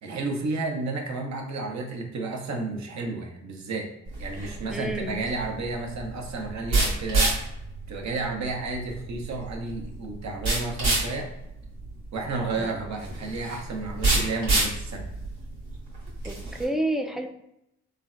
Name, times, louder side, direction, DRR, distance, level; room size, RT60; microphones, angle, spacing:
voice 1, 0.0-3.9 4.2-7.3 7.9-11.3 12.1-15.1, right 3 dB, 55° right, 2 dB, 0.7 m, -32 dB
sound 1, 4.1-16.6, right 2 dB, 85° right, 1.0 m, -29 dB
voice 2, 4.7-5.2 12.6-12.7 16.2-17.3, right 1 dB, ahead, 4 dB, 0.4 m, -29 dB
3.3 x 2.1 x 2.5 m, 0.83 s
hypercardioid pair, 45°, 32 cm